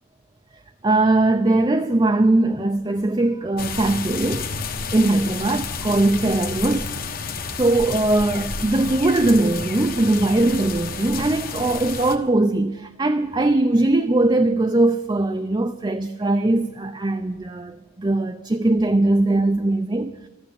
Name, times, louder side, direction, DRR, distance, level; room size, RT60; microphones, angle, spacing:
voice 1, 0.8-4.5 4.9-7.0 7.6-20.3, right 2 dB, 20° right, 0.5 m, -20 dB
sound 1, 3.6-12.2, left 5 dB, 40° left, 1.1 m, -30 dB
14.5 x 11.5 x 8.4 m
head